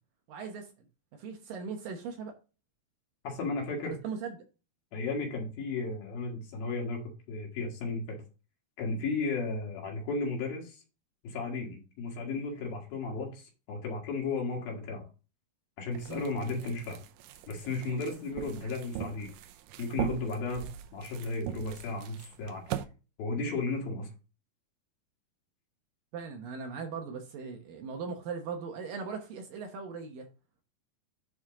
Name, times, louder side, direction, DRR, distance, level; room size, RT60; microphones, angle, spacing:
voice 1, 0.3-0.7 1.2-2.3 3.9-4.4 16.1-16.3 26.1-30.3, right 5 dB, 70° right, 2.5 m, -39 dB
voice 2, 3.2-4.0 4.9-7.0 7.3-8.2 8.8-10.8 11.2-15.1 15.8-17.0 17.5-19.3 19.8-20.7 20.9-22.6 23.2-24.1, left 3 dB, 65° left, 3.7 m, -34 dB
sound 1, 15.9-22.8, right 11 dB, 85° right, 2.0 m, -40 dB
9.8 x 5.0 x 3.8 m
omnidirectional pair, 4.7 m